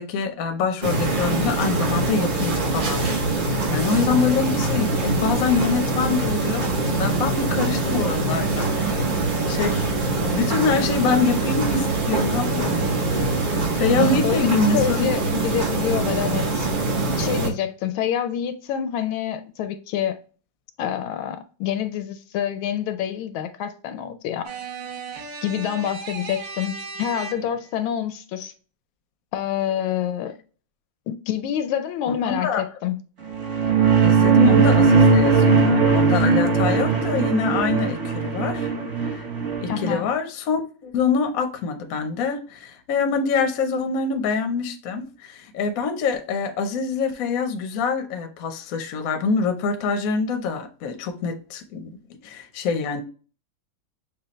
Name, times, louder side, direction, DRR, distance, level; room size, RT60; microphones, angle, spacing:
voice 1, 0.0-3.0 3.7-9.2 9.5-13.4 13.7-15.1 32.2-32.6 34.0-38.7 39.0-39.3 39.6-52.0 52.2-53.0, left 5 dB, 60° left, 0.9 m, -25 dB
sound 1, 0.8-17.5, right 3 dB, 80° right, 0.4 m, -23 dB
voice 2, 14.2-16.7 17.2-20.2 20.8-24.5 25.4-28.5 29.3-30.3 31.1-33.0 39.7-40.1, left 10 dB, 80° left, 1.3 m, -27 dB
sound 2, 24.4-27.7, right 4 dB, 60° right, 1.5 m, -36 dB
sound 3, 33.3-40.0, right 4 dB, 45° right, 1.1 m, -18 dB
6.7 x 2.4 x 3.0 m
omnidirectional pair, 2.3 m